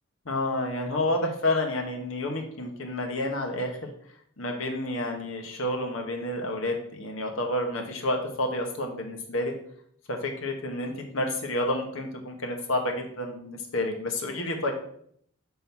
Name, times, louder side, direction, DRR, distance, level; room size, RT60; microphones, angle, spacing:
voice 1, 0.2-3.8 4.4-9.5 10.1-14.7, left 1 dB, 75° left, 3 dB, 1.0 m, -29 dB
5.7 x 3.8 x 4.5 m, 0.65 s
head